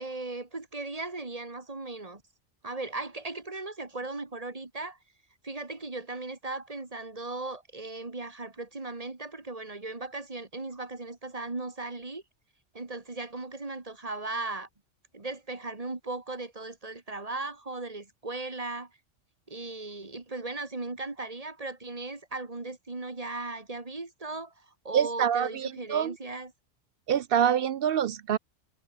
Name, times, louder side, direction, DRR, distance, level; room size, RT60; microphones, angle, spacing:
voice 1, 0.0-2.2 2.6-5.0 5.4-12.2 12.7-14.7 15.1-18.9 19.5-26.5, right 2 dB, 30° right, 1.9 m, -37 dB
voice 2, 24.9-26.1 27.1-28.4, right 9 dB, 60° right, 0.6 m, -26 dB
omnidirectional pair, 1.3 m